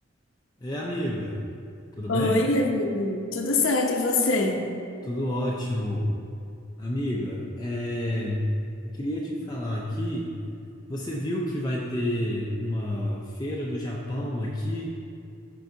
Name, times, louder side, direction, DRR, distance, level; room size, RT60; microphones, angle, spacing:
voice 1, 0.6-1.4 2.0-2.4 5.0-6.1 6.8-8.5 8.9-10.4 10.9-14.9, left 1 dB, 20° left, -4 dB, 0.5 m, -29 dB
voice 2, 2.1-4.6, left 2 dB, 75° left, 3 dB, 0.8 m, -24 dB
12.0 x 4.7 x 2.7 m, 2.5 s
head